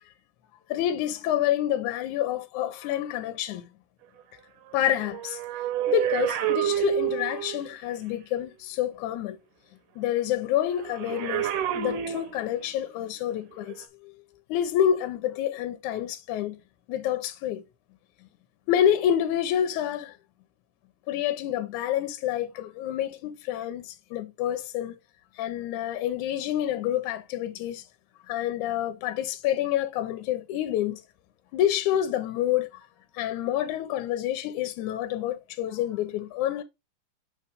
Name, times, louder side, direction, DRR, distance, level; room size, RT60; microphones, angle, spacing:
voice 1, 0.7-3.7 4.7-5.4 5.9-9.4 10.0-11.5 11.8-14.1 14.5-16.6 16.9-17.6 18.7-20.2 21.1-25.0 25.4-27.8 28.3-31.0 31.5-32.7 33.2-36.6, left 11 dB, 75° left, 2.1 m, -28 dB
sound 1, 5.0-7.7 10.8-12.8 13.6-13.8, right 11 dB, 85° right, 2.4 m, -29 dB
4.4 x 4.4 x 5.2 m
omnidirectional pair, 3.7 m